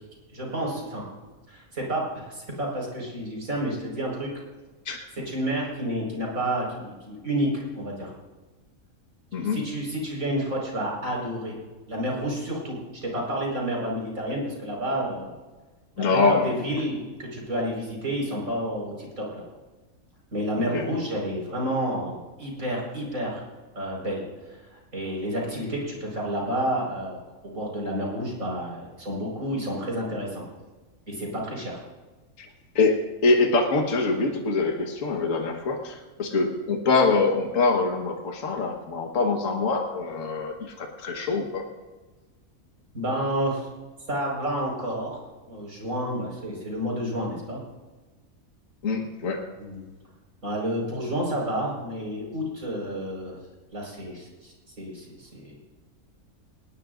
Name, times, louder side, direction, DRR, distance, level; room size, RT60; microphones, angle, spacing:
voice 1, 0.3-1.0 1.5-4.3 5.3-8.1 9.4-11.5 11.9-15.3 16.0-19.4 20.3-23.4 23.8-24.2 24.7-30.4 31.1-31.8 42.9-43.7 44.1-45.2 45.5-47.6 49.6-49.9 50.4-53.4 53.7-55.5, right 1 dB, 60° right, -2 dB, 5.5 m, -30 dB
voice 2, 9.3-9.6 16.0-16.6 20.7-20.8 32.4-32.5 32.8-41.7 48.8-49.5, left 3 dB, 60° left, 2 dB, 1.8 m, -24 dB
20.0 x 19.5 x 2.6 m, 1.2 s
omnidirectional pair, 1.5 m